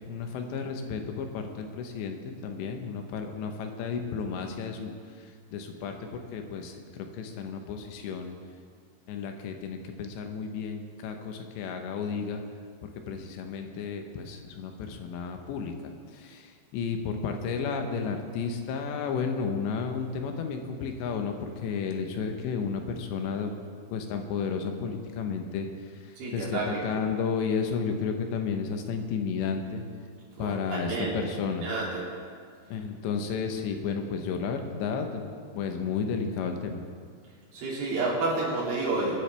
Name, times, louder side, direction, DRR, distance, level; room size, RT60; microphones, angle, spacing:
voice 1, 0.1-2.2 2.4-8.3 9.1-12.4 12.8-23.5 23.9-25.7 25.9-29.8 30.4-31.7 32.7-36.8, left 5 dB, 90° left, 5 dB, 3.3 m, -32 dB
voice 2, 26.2-26.8 30.3-31.3 31.6-32.0 37.5-39.2, right 3 dB, 60° right, -6 dB, 4.5 m, -30 dB
23.5 x 9.8 x 3.4 m, 2.1 s
omnidirectional pair, 4.9 m